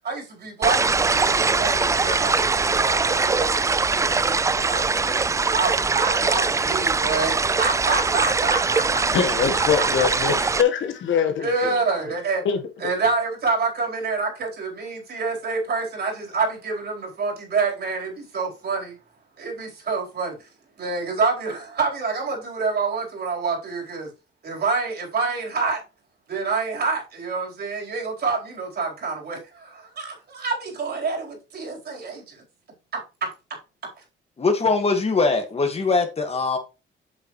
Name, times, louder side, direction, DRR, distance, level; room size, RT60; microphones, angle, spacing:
voice 1, 0.0-5.0 5.5-9.0 11.4-12.4 12.8-19.0 19.4-20.4 20.8-24.1 24.4-25.8 26.3-32.4 32.9-33.3, right 4 dB, 55° right, 4.2 m, -27 dB
sound 1, 0.6-10.6, right 4 dB, 15° right, 0.3 m, -22 dB
voice 2, 9.1-11.7 12.4-12.6, left 7 dB, 75° left, 1.4 m, -23 dB
voice 3, 34.4-36.6, left 4 dB, 30° left, 1.8 m, -21 dB
8.1 x 6.4 x 3.2 m
cardioid pair, 90°, 20 cm